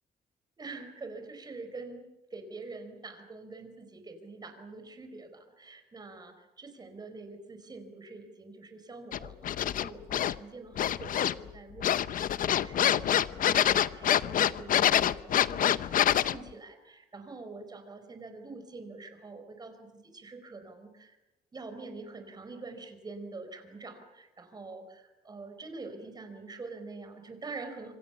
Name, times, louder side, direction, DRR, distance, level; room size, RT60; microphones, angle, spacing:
voice 1, 0.6-10.0 10.3-21.2 21.5-27.9, right 3 dB, 25° right, 7 dB, 4.6 m, -45 dB
sound 1, 9.1-10.4 10.8-11.5 11.8-16.4, left 10 dB, 55° left, 0.8 m, -26 dB
26.5 x 26.0 x 7.1 m, 1.0 s
cardioid pair, 140°, 17 cm